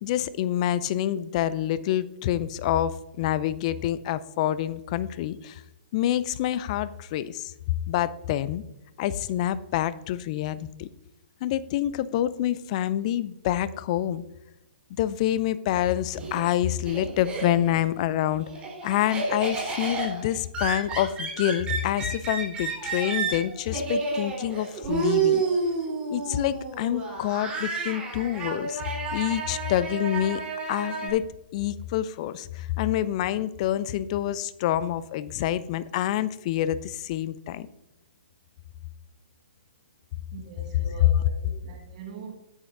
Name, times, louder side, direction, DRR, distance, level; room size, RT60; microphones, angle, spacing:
voice 1, 0.0-5.6 5.9-7.5 7.9-8.6 9.0-10.9 11.4-14.2 15.0-18.5 18.8-25.4 26.1-28.8 29.1-30.4 30.7-31.2 31.5-37.7, left 12 dB, 35° left, 0.5 m, -27 dB
Laughter, 15.7-17.8 18.2-31.1, right 4 dB, 15° right, 3.8 m, -30 dB
voice 2, 40.3-42.3, right 5 dB, 40° right, 1.7 m, -42 dB
13.5 x 10.0 x 2.7 m
figure-of-eight pair, 125°, 6 cm